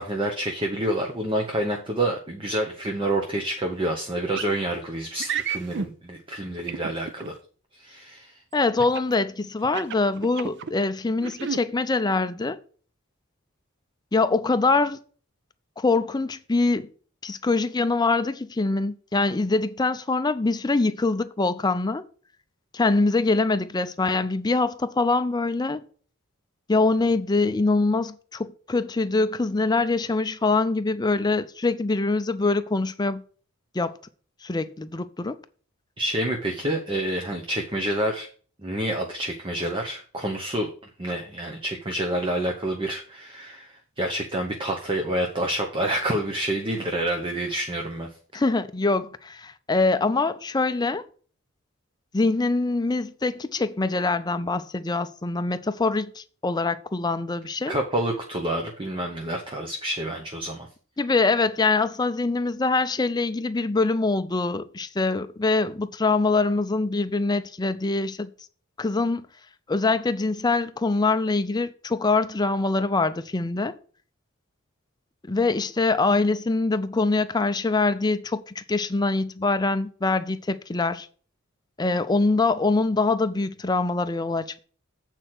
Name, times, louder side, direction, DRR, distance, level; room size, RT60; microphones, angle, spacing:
voice 1, 0.0-7.4 7.7-8.4 36.0-38.3 38.6-40.7 41.0-48.1 57.7-60.7, right 1 dB, 25° right, 0.8 m, -28 dB
sound 1, 4.3-4.5 5.2-5.9 6.7-7.3 8.8-9.1 9.6-10.7 11.2-11.6, right 7 dB, 55° right, 0.5 m, -31 dB
voice 2, 8.5-12.6 14.1-15.0 15.8-16.9 17.2-22.0 22.7-25.9 26.7-33.2 33.7-34.0 34.4-35.4 48.3-51.0 52.1-57.8 61.0-68.3 68.8-69.3 69.7-73.7 75.3-81.1 81.8-84.6, left 3 dB, 20° left, 0.5 m, -24 dB
8.3 x 4.5 x 6.0 m
head